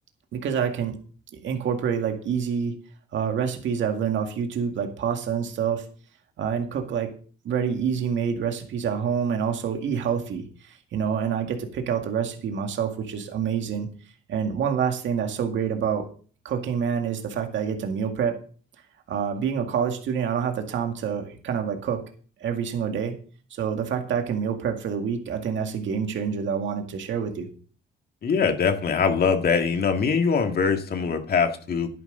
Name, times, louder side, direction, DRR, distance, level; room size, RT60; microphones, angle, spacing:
voice 1, 0.3-0.9 1.3-2.7 3.1-5.8 6.4-7.1 7.4-13.9 14.3-16.1 16.4-18.4 19.1-22.0 22.4-23.1 23.5-27.5, right 7 dB, 70° right, 4 dB, 2.0 m, -27 dB
voice 2, 28.2-31.9, left 5 dB, 50° left, 5 dB, 2.0 m, -22 dB
11.0 x 10.5 x 3.9 m, 0.41 s
cardioid pair, 90°, 20 cm